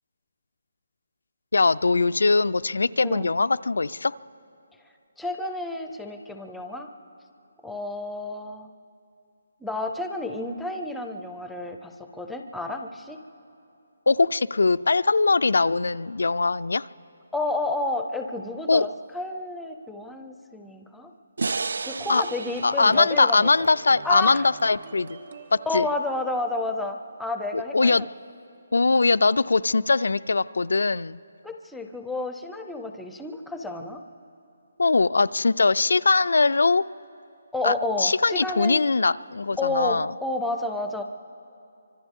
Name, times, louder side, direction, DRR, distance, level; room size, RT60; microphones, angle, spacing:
voice 1, 1.5-4.1 14.1-16.9 18.7-18.9 22.1-22.2 22.6-25.2 25.7-25.9 27.5-28.1 28.7-31.2 34.8-36.8 37.6-40.1, left 3 dB, 90° left, 15 dB, 0.4 m, -21 dB
voice 2, 5.2-6.9 7.6-8.7 9.6-13.2 17.3-21.1 21.8-23.5 24.0-24.5 25.7-28.1 31.4-34.0 37.5-38.8 39.6-41.0, left 2 dB, ahead, 5 dB, 0.4 m, -30 dB
sound 1, 21.4-24.6, right 4 dB, 65° right, 0.4 m, -34 dB
sound 2, 21.9-27.4, right 3 dB, 40° right, 0.8 m, -46 dB
30.0 x 25.0 x 3.6 m, 2.7 s
hypercardioid pair, 175°, 0 cm